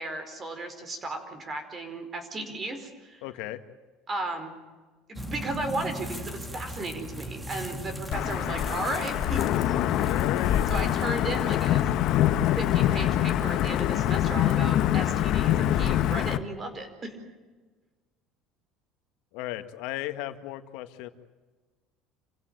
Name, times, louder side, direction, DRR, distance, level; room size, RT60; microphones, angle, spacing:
voice 1, 0.0-3.2 4.1-4.5 5.1-9.6 10.7-11.8 12.5-17.2, right 2 dB, 25° right, 7 dB, 4.8 m, -35 dB
voice 2, 3.2-3.6 10.0-10.7 19.3-21.1, left 15 dB, 75° left, 9 dB, 1.8 m, -35 dB
sound 1, 5.2-11.7, equal, 10° right, 2.4 m, -39 dB
Wind / Thunder / Rain, 8.1-16.4, left 12 dB, 55° left, 1.3 m, -24 dB
27.5 x 16.5 x 9.1 m, 1.3 s
cardioid pair, 135°, 0 cm